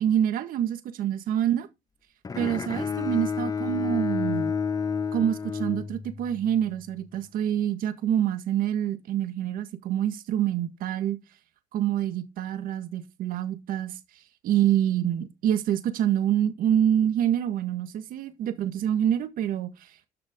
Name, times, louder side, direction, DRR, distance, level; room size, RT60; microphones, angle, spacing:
voice 1, 0.0-1.7 2.4-4.5 5.1-11.2 11.7-13.9 14.4-20.1, right 10 dB, 75° right, 1.8 m, -26 dB
Bowed string instrument, 2.2-6.5, left 6 dB, 25° left, 0.6 m, -30 dB
11.5 x 6.4 x 3.8 m
cardioid pair, 85°, 15 cm